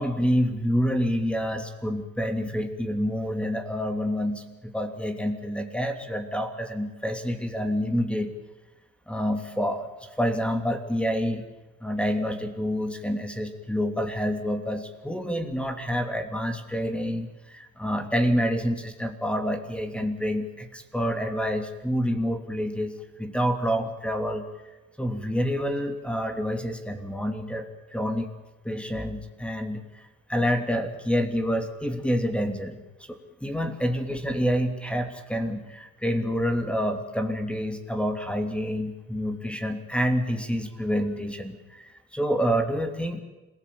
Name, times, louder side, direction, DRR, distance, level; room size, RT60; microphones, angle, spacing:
voice 1, 0.0-8.3 9.1-11.4 11.8-24.5 25.0-28.3 28.6-32.8 33.1-43.2, equal, 5° left, 6 dB, 3.0 m, -28 dB
26.5 x 18.5 x 8.7 m, 1.1 s
cardioid pair, 90°, 30 cm